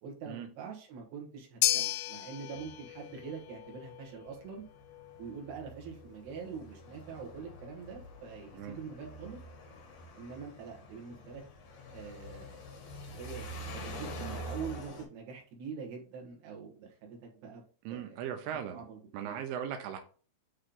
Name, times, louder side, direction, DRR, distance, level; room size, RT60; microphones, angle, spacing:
voice 1, 0.0-4.6 5.2-9.4 10.1-11.4 11.9-12.6 13.2-17.6 17.9-18.2 18.7-19.4, right 5 dB, 65° right, 0 dB, 3.0 m, -44 dB
sound 1, 1.6-10.0, left 14 dB, 85° left, 3.3 m, -38 dB
sound 2, 2.6-15.0, equal, 70° left, 1.8 m, -46 dB
voice 2, 17.9-18.8 19.1-20.0, right 9 dB, 90° right, 6 dB, 2.3 m, -38 dB
8.5 x 3.2 x 3.8 m, 0.40 s
omnidirectional pair, 5.6 m